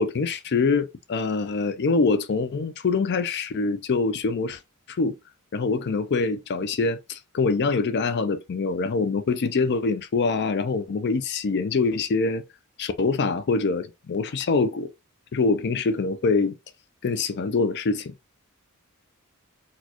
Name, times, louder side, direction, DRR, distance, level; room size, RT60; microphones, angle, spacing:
voice 1, 0.0-4.6 4.9-5.2 5.5-12.4 12.8-14.9 15.3-16.5 17.0-18.1, left 4 dB, 50° left, 0.4 m, -24 dB
4.1 x 2.3 x 2.9 m
head